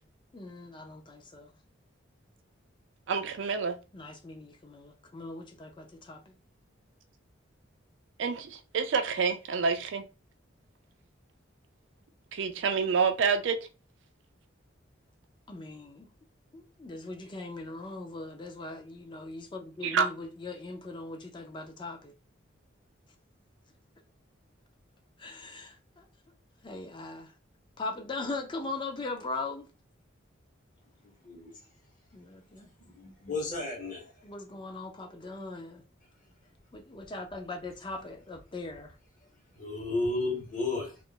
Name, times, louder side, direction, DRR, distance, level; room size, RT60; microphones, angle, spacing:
voice 1, 0.3-1.5 3.9-6.4 15.5-16.1 16.5-22.1 25.2-26.0 26.6-27.3 27.8-29.7 32.1-32.7 34.2-35.8 36.7-38.9, left 3 dB, 25° left, 0.4 m, -40 dB
voice 2, 3.1-3.7 8.2-10.0 12.3-13.6 19.8-20.1, right 5 dB, 70° right, 0.4 m, -28 dB
voice 3, 32.8-34.1 39.6-41.0, left 2 dB, 40° left, 1.0 m, -33 dB
2.4 x 2.0 x 3.6 m
head